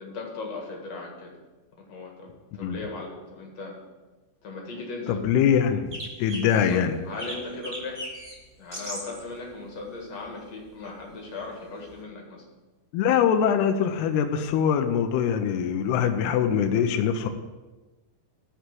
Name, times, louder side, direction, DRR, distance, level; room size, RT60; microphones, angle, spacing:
voice 1, 0.0-1.3 1.9-3.8 4.4-5.2 6.5-8.0 8.6-12.4, left 3 dB, 50° left, -1 dB, 2.3 m, -38 dB
voice 2, 5.1-5.9 6.2-6.9 12.9-17.3, left 8 dB, 80° left, 6 dB, 2.5 m, -23 dB
sound 1, 5.9-6.8 7.2-8.3 8.7-9.2 10.5-10.6 11.9-12.0, equal, 10° right, 2.2 m, -37 dB
13.0 x 4.9 x 7.6 m, 1.2 s
omnidirectional pair, 5.1 m